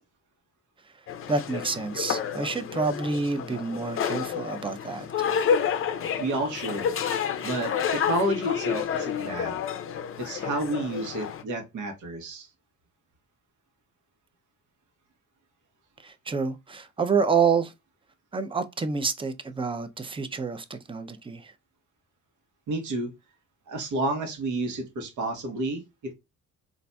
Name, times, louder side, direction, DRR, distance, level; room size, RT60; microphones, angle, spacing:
sound 1, 1.1-11.4, left 7 dB, 45° left, 0.5 m, -30 dB
voice 1, 1.3-5.1 16.0-17.7 18.3-21.5, right 5 dB, 20° right, 0.5 m, -28 dB
voice 2, 6.2-6.9 7.4-9.6 10.2-12.5 22.7-23.1 23.7-26.1, right 2 dB, 75° right, 1.1 m, -30 dB
3.9 x 2.5 x 2.2 m
cardioid pair, 90°, 30 cm